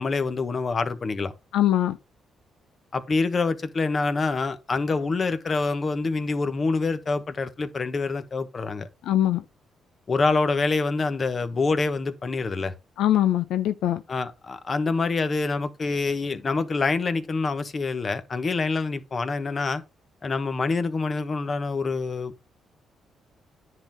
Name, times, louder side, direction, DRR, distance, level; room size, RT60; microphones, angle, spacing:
voice 1, 0.0-1.3 2.9-8.9 10.1-12.7 14.1-19.8 20.2-22.4, left 3 dB, 35° left, 1.2 m, -26 dB
voice 2, 1.5-2.0 9.0-9.4 13.0-14.0, left 12 dB, 85° left, 0.5 m, -22 dB
10.0 x 3.8 x 6.0 m
cardioid pair, 90°, 0 cm